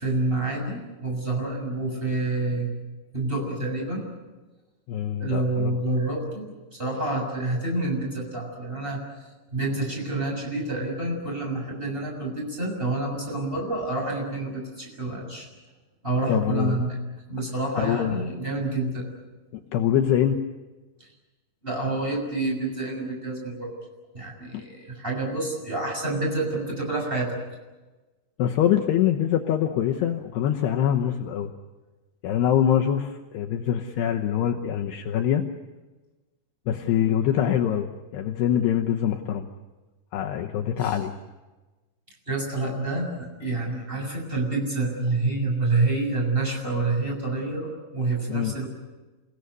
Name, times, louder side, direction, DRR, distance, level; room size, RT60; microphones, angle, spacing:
voice 1, 0.0-2.7 3.1-4.1 5.2-6.5 6.8-9.0 9.5-15.5 16.0-17.0 17.3-19.1 21.6-23.7 24.1-27.4 40.8-40.9 42.3-48.7, right 2 dB, 10° right, -1 dB, 6.7 m, -28 dB
voice 2, 4.9-5.7 16.3-16.8 17.8-18.3 19.5-20.4 24.5-24.7 28.4-31.5 32.2-35.4 36.7-39.5 40.1-41.1 48.3-48.5, left 10 dB, 75° left, 2 dB, 2.8 m, -24 dB
28.5 x 18.0 x 9.5 m, 1.2 s
omnidirectional pair, 5.4 m